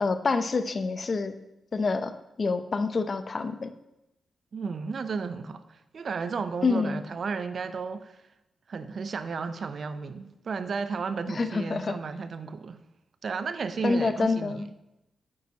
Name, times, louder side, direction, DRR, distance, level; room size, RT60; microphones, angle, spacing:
voice 1, 0.0-1.4 1.7-3.7 6.6-7.0 11.3-12.0 13.8-14.7, left 4 dB, 50° left, 11 dB, 0.6 m, -27 dB
voice 2, 4.5-8.2 8.7-12.8 13.2-14.7, right 5 dB, 65° right, 11 dB, 0.5 m, -33 dB
8.7 x 8.0 x 2.9 m, 0.89 s
cardioid pair, 65°, 0 cm